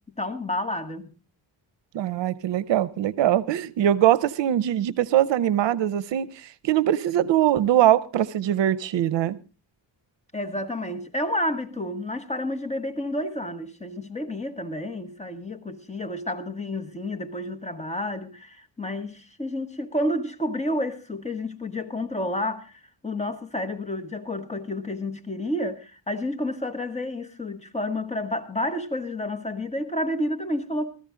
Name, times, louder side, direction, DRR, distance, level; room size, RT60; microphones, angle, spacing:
voice 1, 0.2-1.1 10.3-31.0, left 1 dB, 15° left, 1.6 m, -30 dB
voice 2, 1.9-9.4, right 12 dB, 70° right, 0.7 m, -22 dB
15.5 x 14.0 x 3.7 m
cardioid pair, 95°, 45 cm